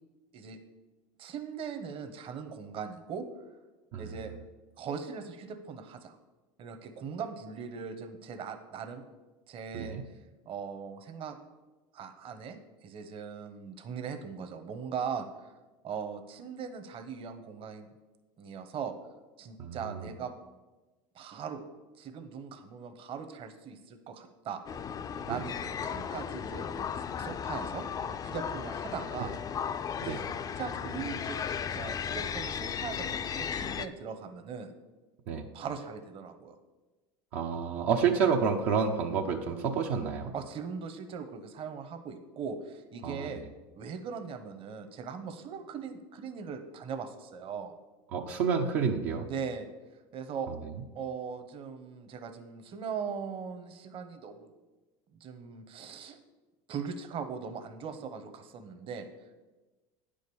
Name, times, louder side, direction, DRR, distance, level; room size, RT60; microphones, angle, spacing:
voice 1, 1.2-3.2 4.0-4.3 4.8-6.2 6.6-9.0 9.5-10.0 10.5-11.4 11.9-15.3 15.8-17.9 18.4-18.9 19.4-20.3 21.1-21.6 22.0-24.6 25.3-26.9 27.2-27.9 28.2-29.3 30.0-31.4 31.7-34.7 35.5-36.6 40.3-43.4 43.8-47.7 49.3-49.7 50.1-50.5 50.9-54.5 55.2-56.2 56.7-59.0, right 6 dB, 45° right, 8 dB, 1.1 m, -40 dB
voice 2, 19.6-20.1 25.3-25.4 30.0-30.2 35.3-35.5 37.3-40.3 43.0-43.3 48.1-49.3, right 6 dB, 70° right, 2 dB, 0.8 m, -29 dB
sound 1, 24.7-33.9, left 7 dB, 30° left, 0.4 m, -35 dB
9.3 x 5.1 x 7.0 m, 1.2 s
supercardioid pair, 100°, 13 cm